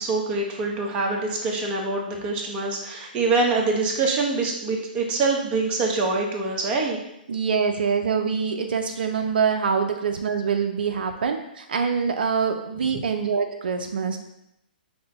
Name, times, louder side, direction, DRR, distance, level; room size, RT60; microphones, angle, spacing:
voice 1, 0.0-7.0, right 3 dB, 25° right, 0 dB, 0.9 m, -25 dB
voice 2, 7.3-14.2, right 6 dB, 70° right, 5 dB, 0.4 m, -25 dB
5.9 x 2.1 x 3.8 m, 0.84 s
hypercardioid pair, 130°, 5 cm